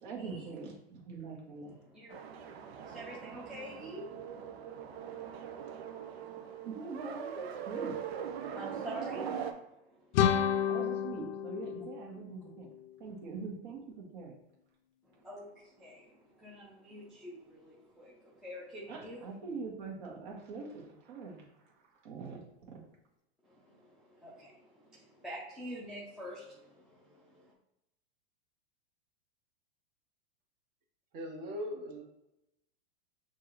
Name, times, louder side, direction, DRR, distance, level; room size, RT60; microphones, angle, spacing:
voice 1, 0.0-1.8 6.6-8.0 10.7-12.7 13.0-14.4 18.9-21.7 22.0-22.4 22.7-22.8, right 4 dB, 45° right, -2 dB, 1.7 m, -43 dB
voice 2, 1.9-5.2 8.5-10.5 15.0-19.2 23.4-27.5, equal, ahead, -8 dB, 0.6 m, -48 dB
sound 1, 2.1-9.5, right 7 dB, 70° right, 0.8 m, -41 dB
sound 2, 10.1-12.9, left 9 dB, 65° left, 0.5 m, -31 dB
voice 3, 31.1-32.0, equal, 25° right, 1 dB, 1.0 m, -39 dB
6.1 x 2.7 x 3.0 m, 0.88 s
supercardioid pair, 155°, 32 cm